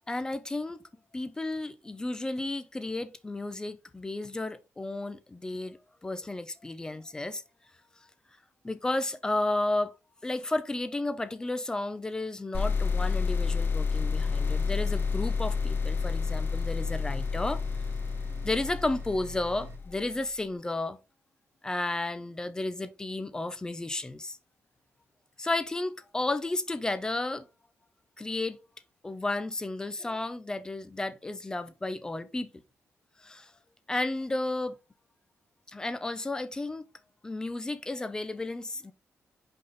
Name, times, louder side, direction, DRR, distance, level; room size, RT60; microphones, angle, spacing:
voice 1, 0.1-0.8 1.1-7.4 8.6-10.0 10.2-17.6 18.3-21.0 21.6-24.4 25.4-27.5 28.2-28.6 29.0-32.5 33.2-33.5 33.9-34.8 35.7-36.9 37.2-38.9, left 2 dB, 15° left, 0.6 m, -33 dB
sound 1, 12.5-20.1, left 5 dB, 40° left, 1.0 m, -30 dB
sound 2, 13.9-19.8, right 7 dB, 50° right, 1.0 m, -48 dB
5.6 x 5.3 x 4.0 m
wide cardioid pair, 165°, 5 cm